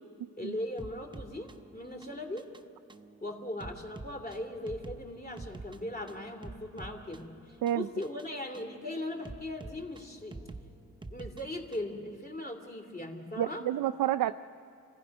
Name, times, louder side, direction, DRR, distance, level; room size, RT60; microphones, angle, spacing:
voice 1, 0.4-2.5 3.2-10.5 11.1-13.6, left 1 dB, 30° left, 3 dB, 2.8 m, -39 dB
sound 1, 0.8-12.0, right 2 dB, 15° right, 0.7 m, -48 dB
voice 2, 13.4-14.3, right 12 dB, 85° right, 10 dB, 0.5 m, -29 dB
29.0 x 16.5 x 5.4 m, 2.5 s
cardioid pair, 125°, 32 cm